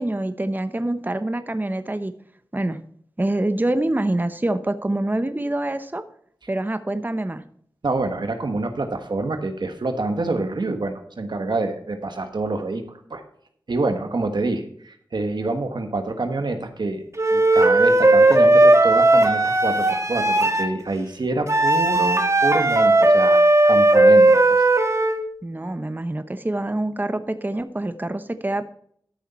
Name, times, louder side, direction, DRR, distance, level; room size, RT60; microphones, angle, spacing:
voice 1, 0.0-2.1 2.5-2.8 3.2-6.0 6.5-7.4 25.4-28.7, right 1 dB, 25° right, 10 dB, 0.8 m, -25 dB
voice 2, 7.8-13.2 13.7-17.0 17.3-24.6, right 2 dB, 80° right, 6 dB, 1.4 m, -27 dB
Wind instrument woodwind instrument, 17.2-20.7 21.5-25.2, right 2 dB, 40° right, 1.6 m, -16 dB
13.0 x 6.6 x 4.2 m, 0.63 s
wide cardioid pair, 45°, 8 cm